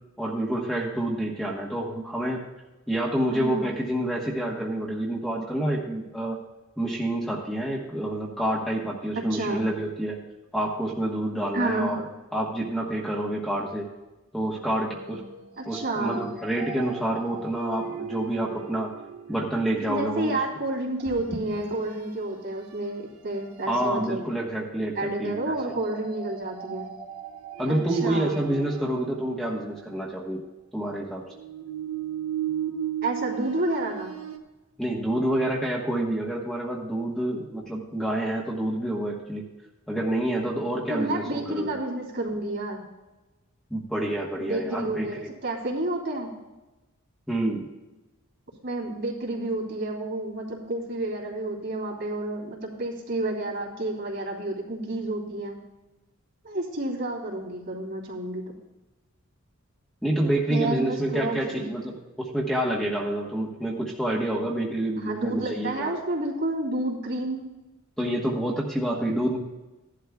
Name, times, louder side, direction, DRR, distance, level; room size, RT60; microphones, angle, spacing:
voice 1, 0.2-2.4 2.9-6.4 6.8-10.2 10.5-12.1 12.3-13.9 14.3-15.2 15.7-18.9 19.3-20.4 23.7-25.6 27.6-30.4 30.7-31.2 34.8-39.4 39.9-41.8 43.7-45.3 47.3-47.7 60.0-65.9 68.0-69.4, right 1 dB, ahead, -3 dB, 1.2 m, -28 dB
voice 2, 3.3-3.7 9.1-9.6 11.5-11.9 15.6-16.3 19.9-24.2 24.9-26.9 27.7-28.4 33.0-34.1 40.9-42.8 44.4-46.3 48.6-55.6 56.4-58.5 60.5-61.8 65.0-67.4, right 2 dB, 55° right, -3 dB, 2.9 m, -30 dB
sound 1, 14.6-19.9 21.0-22.2 22.7-22.9 23.4-24.0 25.6-30.0 31.3-34.4, right 8 dB, 85° right, 1.2 m, -37 dB
16.0 x 11.5 x 2.3 m, 1.1 s
head